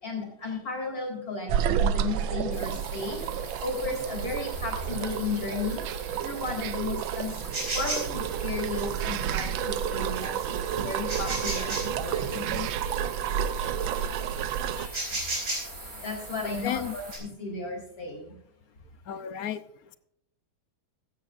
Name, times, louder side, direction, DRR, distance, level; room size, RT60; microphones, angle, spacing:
voice 1, 0.0-5.8 6.2-7.4 7.7-11.7 12.0-12.3 12.8-12.9 13.6-15.0 16.0-18.3, left 3 dB, 40° left, 1 dB, 4.6 m, -34 dB
sound 1, 1.5-14.9, right 9 dB, 75° right, 1.4 m, -30 dB
sound 2, 2.5-17.2, right 2 dB, 40° right, 4.8 m, -38 dB
voice 2, 12.3-12.8 16.4-17.0 19.0-20.0, left 10 dB, 60° left, 13 dB, 0.9 m, -35 dB
16.0 x 13.0 x 2.6 m, 0.73 s
omnidirectional pair, 2.3 m